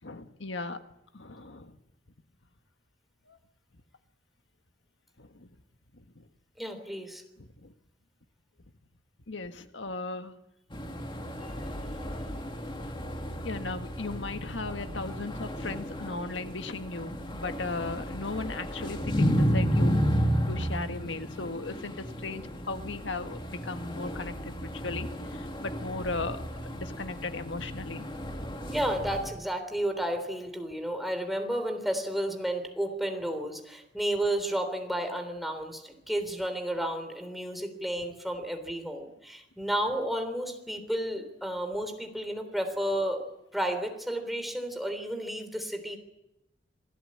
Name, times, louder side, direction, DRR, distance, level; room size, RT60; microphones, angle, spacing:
voice 1, 0.0-0.8 1.1-1.7 3.3-3.4 5.2-5.5 5.9-6.2 7.4-7.7 9.3-10.3 13.4-20.0 20.5-26.4 26.7-28.1, left 3 dB, 85° left, 8 dB, 1.6 m, -37 dB
voice 2, 6.6-7.2 28.7-43.3 43.5-46.0, right 1 dB, ahead, 5 dB, 3.5 m, -32 dB
sound 1, 10.7-29.3, equal, 25° left, 2.6 m, -32 dB
26.5 x 17.0 x 8.7 m, 0.88 s
head